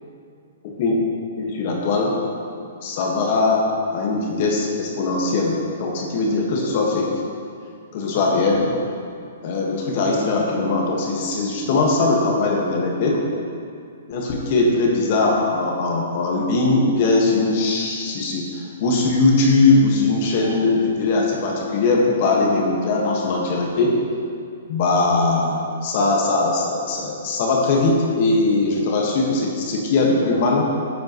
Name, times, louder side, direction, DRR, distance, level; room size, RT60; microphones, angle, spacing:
voice 1, 0.6-0.9 1.4-2.1 2.8-7.1 7.9-8.7 9.4-13.2 14.1-24.0 24.7-30.7, left 3 dB, 50° left, -1 dB, 1.6 m, -20 dB
11.0 x 8.1 x 3.1 m, 2.3 s
hypercardioid pair, 140°, 0 cm